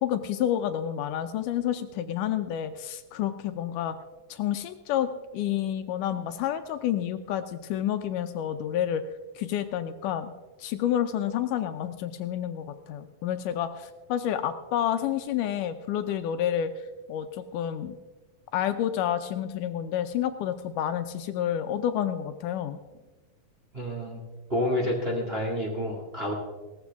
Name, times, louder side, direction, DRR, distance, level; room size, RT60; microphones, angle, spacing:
voice 1, 0.0-4.0 4.3-9.0 9.4-10.3 10.6-16.7 17.1-18.0 18.5-22.8, left 10 dB, 80° left, 9 dB, 2.2 m, -29 dB
voice 2, 23.7-24.2 24.5-26.3, left 1 dB, 20° right, -2 dB, 1.9 m, -29 dB
18.0 x 14.5 x 3.5 m, 1.2 s
omnidirectional pair, 3.9 m